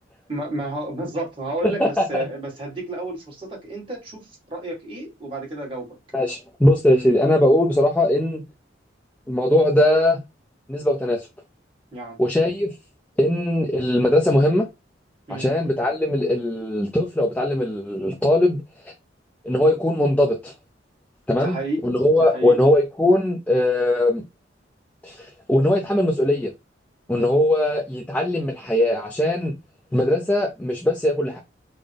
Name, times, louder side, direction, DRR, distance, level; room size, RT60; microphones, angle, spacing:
voice 1, 0.3-5.9 6.9-7.1 11.9-12.2 15.3-15.5 21.4-21.8 22.3-22.6, right 1 dB, 30° right, 1.7 m, -31 dB
voice 2, 1.6-2.2 6.1-8.4 9.3-10.2 10.7-11.3 12.2-12.7 13.2-14.7 15.3-18.6 19.4-20.5 21.3-24.2 25.0-26.5 27.1-29.5 29.9-31.4, left 1 dB, 10° left, 0.4 m, -20 dB
3.8 x 2.1 x 3.3 m
head